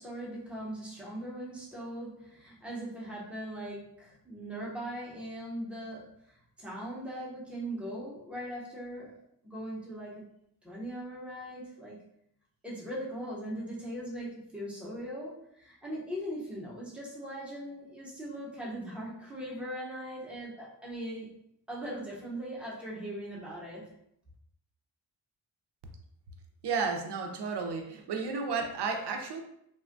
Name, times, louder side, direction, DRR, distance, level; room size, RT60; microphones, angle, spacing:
voice 1, 0.0-9.1 9.4-10.2 10.6-12.0 12.6-21.3 21.7-23.9, right 1 dB, 5° right, -6 dB, 0.7 m, -40 dB
voice 2, 26.6-29.4, right 5 dB, 65° right, 4 dB, 0.5 m, -32 dB
3.3 x 2.1 x 2.5 m, 0.74 s
wide cardioid pair, 160°, 44 cm